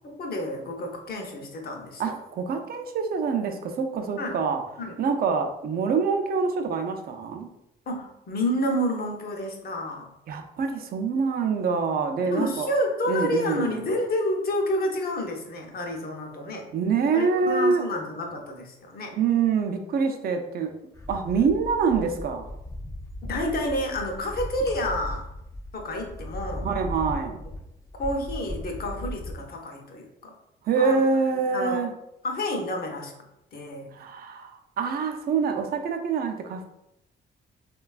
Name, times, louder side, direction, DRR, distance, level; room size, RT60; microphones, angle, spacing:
voice 1, 0.0-2.1 4.2-4.4 4.8-5.0 7.9-10.1 12.2-16.7 17.1-19.1 23.2-25.2 25.7-26.7 28.0-30.3 30.8-31.0 31.5-31.8 32.2-33.1 33.5-33.9, left 1 dB, 50° left, 2 dB, 0.6 m, -29 dB
voice 2, 2.0-4.6 5.0-7.5 10.3-12.7 13.1-13.8 16.7-17.9 19.2-20.7 21.1-22.5 26.6-27.4 30.6-31.9 33.9-36.6, right 5 dB, 50° right, 5 dB, 0.4 m, -25 dB
sound 1, 20.9-29.3, left 1 dB, 15° left, 0.3 m, -37 dB
3.1 x 2.3 x 2.3 m, 0.85 s
cardioid pair, 90°, 20 cm